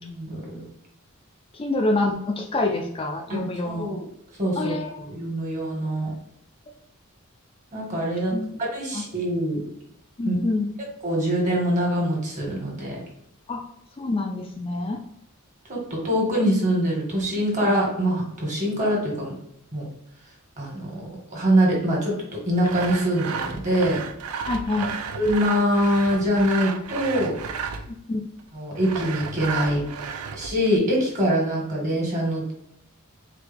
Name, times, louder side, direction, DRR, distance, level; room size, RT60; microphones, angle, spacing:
voice 1, 0.0-0.6 3.3-4.0 4.4-6.1 7.7-8.3 8.7-9.6 10.2-10.4 11.0-13.0 15.7-19.3 19.7-19.9 20.6-21.0 21.3-24.0 25.2-27.3 28.5-29.8 30.3-32.5, equal, 35° right, -2 dB, 1.5 m, -24 dB
voice 2, 1.5-3.9 4.6-5.0 8.3-8.5 8.9-9.0 10.2-10.7 13.5-13.6 14.0-15.0 16.1-16.2 24.5-24.9 27.9-28.2, left 2 dB, 25° left, 2 dB, 0.4 m, -26 dB
Sawing, 22.6-28.0 28.8-30.8, right 6 dB, 90° right, 0.4 m, -33 dB
4.6 x 2.2 x 3.4 m, 0.76 s
head